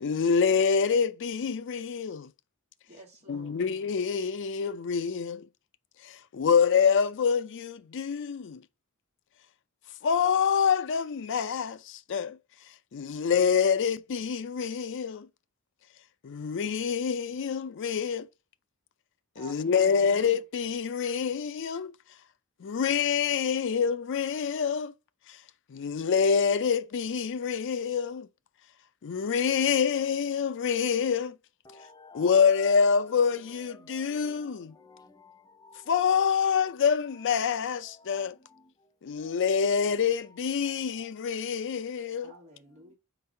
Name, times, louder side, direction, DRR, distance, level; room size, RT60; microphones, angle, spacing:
voice 1, 0.0-2.3 3.3-5.5 6.1-8.6 10.0-12.4 12.9-15.3 16.2-18.3 19.4-21.9 22.6-24.9 25.7-28.3 29.0-31.3 32.1-34.7 35.9-38.3 39.0-42.3, left 6 dB, 55° left, 0.4 m, -26 dB
voice 2, 2.9-3.6 19.4-20.2 42.2-43.0, right 1 dB, 30° right, 2.1 m, -51 dB
voice 3, 31.7-32.3 33.9-34.5 34.8-35.9 38.1-38.3 39.3-39.4, left 2 dB, 15° left, 0.6 m, -53 dB
4.6 x 4.0 x 5.3 m
head